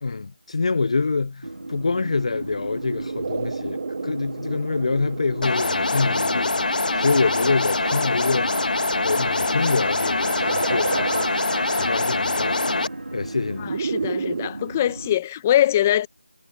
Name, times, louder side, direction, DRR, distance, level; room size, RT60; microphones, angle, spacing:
voice 1, 0.0-8.5 9.0-12.8 13.1-13.8, left 4 dB, 40° left, 0.8 m, -26 dB
sound 1, 1.4-15.1, right 2 dB, 80° right, 2.3 m, -35 dB
sound 2, 2.5-14.5, right 5 dB, 30° right, 1.2 m, -34 dB
sound 3, 5.4-12.9, left 3 dB, 60° left, 2.4 m, -24 dB
voice 2, 13.6-16.1, left 12 dB, 15° left, 1.3 m, -22 dB
figure-of-eight pair, 170°, 5 cm